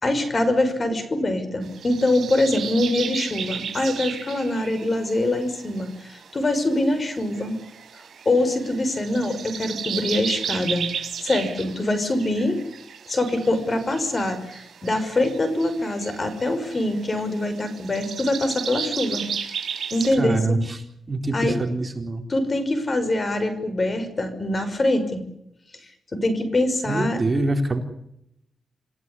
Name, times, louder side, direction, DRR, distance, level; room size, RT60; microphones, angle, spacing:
voice 1, 0.0-7.6 8.3-10.9 11.2-12.6 13.1-19.3 19.9-20.6 21.3-21.6 22.3-25.2 26.1-27.2, left 1 dB, 35° left, 10 dB, 5.9 m, -24 dB
sound 1, 1.6-20.2, right 7 dB, 75° right, 6.2 m, -34 dB
voice 2, 20.2-20.8 21.1-22.2 26.9-27.8, right 2 dB, 30° right, 5 dB, 4.1 m, -24 dB
28.0 x 16.0 x 9.9 m, 0.78 s
cardioid pair, 105°, 0 cm